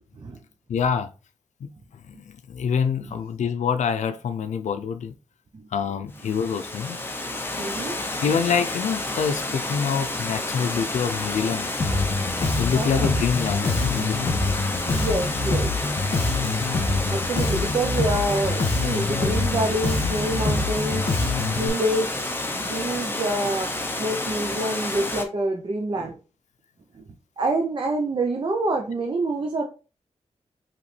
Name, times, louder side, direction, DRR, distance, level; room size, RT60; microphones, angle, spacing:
voice 1, 0.7-1.1 1.6-1.7 2.1-5.1 5.7-7.0 8.2-11.7 12.6-14.4, left 6 dB, 85° left, 0.5 m, -26 dB
Water, 6.1-25.2, left 2 dB, 20° left, 0.7 m, -30 dB
voice 2, 7.6-8.0 12.7-13.1 14.9-15.7 16.9-21.1 21.5-22.1 22.5-23.7 24.0-26.2 26.9-27.1 27.4-29.7, right 2 dB, 40° right, 0.7 m, -27 dB
Bass guitar, 11.8-21.7, left 3 dB, 50° left, 1.6 m, -25 dB
5.0 x 3.2 x 3.2 m
wide cardioid pair, 125°, 12 cm